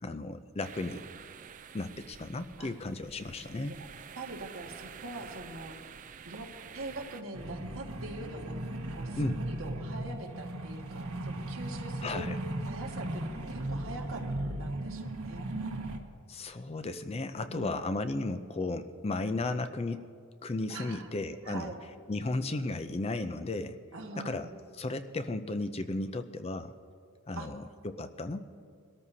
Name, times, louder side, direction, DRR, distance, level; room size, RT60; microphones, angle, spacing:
voice 1, 0.0-1.1 1.7-3.8 9.2-9.4 12.0-12.4 16.3-20.1 20.4-21.7 22.1-23.8 24.2-24.5 24.8-26.7 27.3-28.4, left 2 dB, 25° left, 9 dB, 0.4 m, -34 dB
sound 1, 0.6-7.2, right 7 dB, 35° right, 0.4 m, -49 dB
voice 2, 4.2-5.8 6.2-6.5 6.7-8.6 8.9-12.3 12.6-14.2 14.6-15.4 17.5-17.8 20.7-21.1 21.4-21.8 23.9-24.5 27.3-27.5, right 2 dB, 60° right, 1 dB, 1.6 m, -43 dB
sound 2, 7.3-16.0, right 1 dB, 80° right, 1.3 m, -37 dB
22.5 x 13.5 x 2.8 m, 2.2 s
head